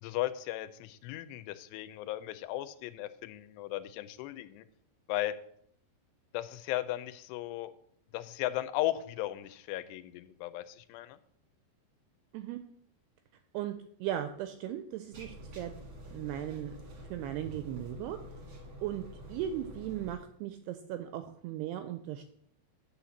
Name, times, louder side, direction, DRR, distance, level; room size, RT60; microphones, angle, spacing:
voice 1, 0.0-4.7 5.1-5.4 6.3-7.7 8.1-11.2, left 15 dB, 85° left, 13 dB, 2.5 m, -36 dB
voice 2, 14.0-15.7 16.1-16.8 17.1-18.2 18.8-22.2, right 11 dB, 85° right, 8 dB, 2.3 m, -37 dB
sound 1, 15.1-20.2, right 1 dB, 55° right, 1.4 m, -47 dB
8.9 x 4.3 x 7.1 m, 0.67 s
omnidirectional pair, 5.1 m